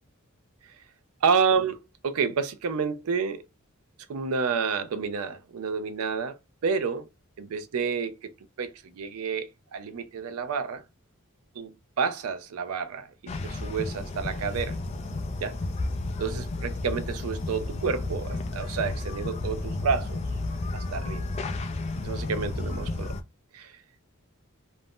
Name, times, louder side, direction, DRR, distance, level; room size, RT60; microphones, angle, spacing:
voice 1, 1.2-3.4 4.1-6.4 6.6-7.1 7.4-8.3 8.6-10.8 11.6-14.8 15.4-15.6 16.2-20.2 20.7-21.2 22.0-23.2 23.5-23.8, right 5 dB, 85° right, 0.4 m, -29 dB
sound 1, 13.3-23.2, left 2 dB, 30° left, 0.3 m, -32 dB
2.5 x 2.0 x 3.5 m
head